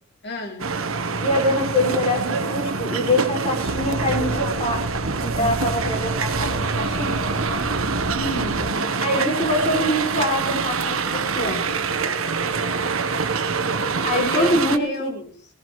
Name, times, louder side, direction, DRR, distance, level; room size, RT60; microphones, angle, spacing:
voice 1, 0.2-0.7 5.4-5.6 8.1-8.7 14.2-15.4, left 1 dB, 55° left, 3.1 m, -32 dB
sound 1, 0.6-14.8, right 4 dB, 75° right, 1.2 m, -25 dB
voice 2, 1.2-4.8 5.2-7.3 9.0-11.7 14.0-15.1, left 1 dB, 30° left, 5.7 m, -24 dB
sound 2, 3.7-8.7, right 1 dB, 45° right, 4.5 m, -32 dB
19.0 x 18.5 x 3.2 m
head